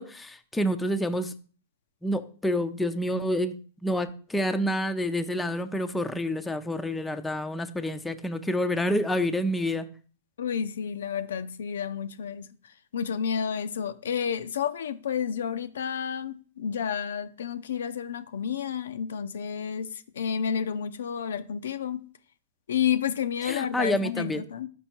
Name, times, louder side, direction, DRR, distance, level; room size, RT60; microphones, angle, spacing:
voice 1, 0.0-1.3 2.0-3.6 3.8-9.9 23.4-24.4, equal, 5° left, 0.5 m, -28 dB
voice 2, 10.4-22.1 22.7-24.7, left 8 dB, 75° left, 0.4 m, -30 dB
5.3 x 4.4 x 4.4 m
hypercardioid pair, 115°, 0 cm